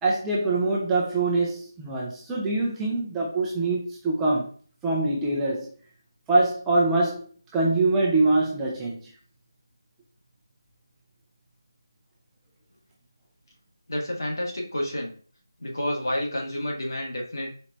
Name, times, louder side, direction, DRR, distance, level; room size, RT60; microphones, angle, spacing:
voice 1, 0.0-4.5 4.8-5.7 6.3-7.3 7.5-9.1, right 2 dB, 5° right, -4 dB, 0.4 m, -24 dB
voice 2, 13.9-15.1 15.6-17.5, left 1 dB, 60° left, -1 dB, 1.5 m, -29 dB
4.3 x 2.9 x 2.6 m, 0.44 s
figure-of-eight pair, 165°, 2 cm